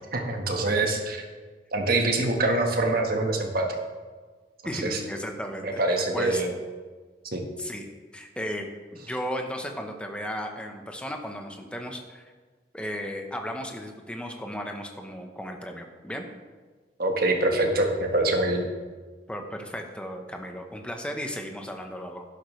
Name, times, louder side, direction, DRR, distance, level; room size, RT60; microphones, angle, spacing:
voice 1, 0.1-1.2 1.7-3.7 4.8-5.0 5.6-6.5 7.3-7.4 17.0-18.7, right 2 dB, 55° right, 2 dB, 1.5 m, -24 dB
voice 2, 4.6-6.4 7.6-7.8 8.1-12.2 12.7-16.2 19.3-22.2, equal, 5° left, 3 dB, 1.0 m, -35 dB
11.5 x 11.0 x 3.3 m, 1.4 s
head